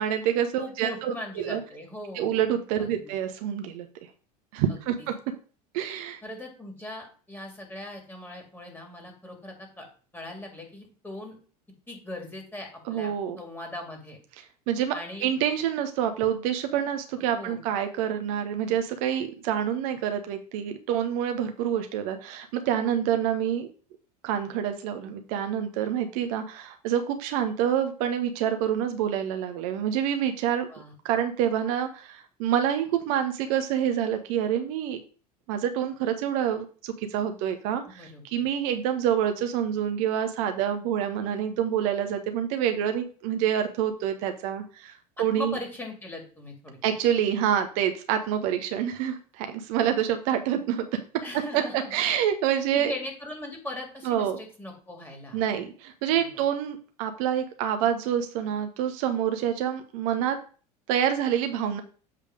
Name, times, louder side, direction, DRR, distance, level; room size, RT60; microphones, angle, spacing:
voice 1, 0.0-1.6 2.1-3.9 4.5-5.1 5.7-6.2 12.9-13.4 14.7-14.9 15.2-23.7 24.2-30.7 31.0-35.0 35.5-45.5 46.8-50.8 51.5-51.6 51.9-52.9 54.0-54.4 55.3-60.4 60.9-61.8, right 9 dB, 60° right, 7 dB, 0.8 m, -27 dB
voice 2, 0.6-2.3 2.8-3.1 4.7-5.1 6.2-9.9 10.1-11.4 11.9-14.2 14.9-15.3 17.3-17.7 30.7-30.9 37.9-38.4 45.2-46.8 51.2-52.0 52.7-55.4, left 1 dB, 10° left, 1 dB, 2.5 m, -39 dB
7.6 x 3.3 x 5.0 m, 0.40 s
hypercardioid pair, 75°, 20 cm